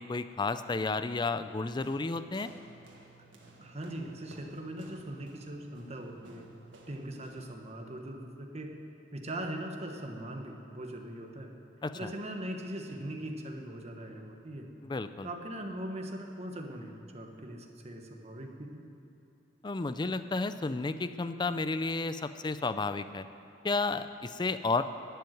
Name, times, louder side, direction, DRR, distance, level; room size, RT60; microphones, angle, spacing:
voice 1, 0.0-2.5 11.8-12.1 14.8-15.3 19.6-23.3 23.6-24.8, left 3 dB, 25° left, 12 dB, 0.4 m, -32 dB
sound 1, 1.8-7.6, right 2 dB, 85° right, 1.8 m, -56 dB
voice 2, 3.6-6.5 6.9-8.7 9.1-11.5 11.9-14.7 15.2-18.9, right 1 dB, 35° right, 3 dB, 1.3 m, -40 dB
11.5 x 8.0 x 9.2 m, 3.0 s
head